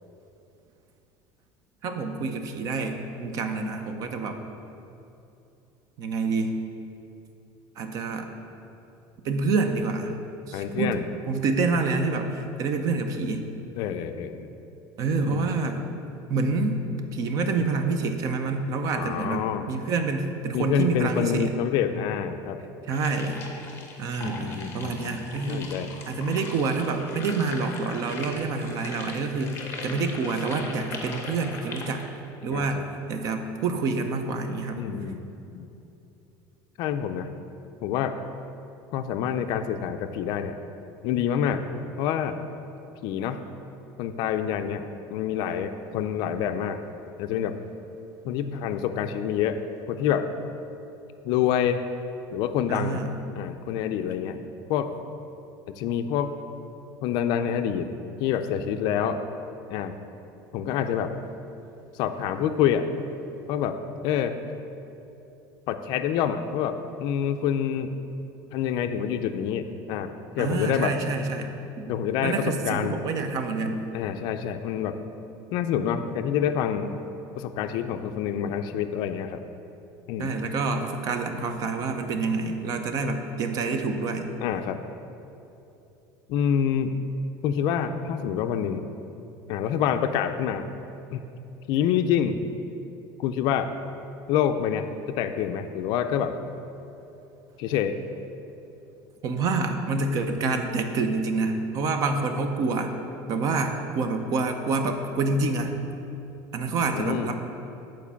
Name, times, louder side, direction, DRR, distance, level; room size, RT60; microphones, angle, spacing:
voice 1, 1.8-4.4 6.0-6.6 7.8-8.3 9.2-10.1 10.5-13.5 15.0-15.8 16.3-21.5 22.9-23.4 24.0-32.0 32.4-32.8 33.1-34.8 52.7-53.1 70.4-71.5 71.8-71.9 72.2-73.8 80.2-84.3 99.2-102.9 103.3-105.7 106.5-107.3, right 3 dB, 40° right, 6 dB, 0.6 m, -27 dB
voice 2, 10.5-11.0 13.8-14.5 15.2-15.5 18.9-19.7 20.5-22.6 24.2-25.2 25.5-25.9 32.5-32.8 34.8-35.2 35.5-35.7 36.8-37.3 37.8-38.2 38.9-40.6 41.0-41.6 42.0-42.4 43.0-43.4 44.0-46.8 47.2-47.6 48.2-49.6 49.9-50.3 51.2-51.8 52.3-53.0 53.3-54.4 54.7-54.9 55.7-56.3 57.0-57.9 58.2-59.2 59.7-59.9 60.5-61.1 61.9-62.9 63.5-63.8 64.0-64.4 65.7-66.7 67.0-67.9 68.5-70.9 71.9-73.0 73.9-74.9 75.5-76.9 77.3-79.4 80.1-80.3 84.4-84.8 86.3-86.9 87.4-88.9 89.5-90.7 91.1-91.2 91.7-92.4 93.2-93.7 94.3-96.4 97.6-98.0 106.9-107.3, left 9 dB, 50° left, 8 dB, 0.4 m, -27 dB
sound 1, 22.9-32.0, left 3 dB, 25° left, 0.9 m, -40 dB
7.3 x 4.5 x 7.0 m, 2.8 s
cardioid pair, 170°, 9 cm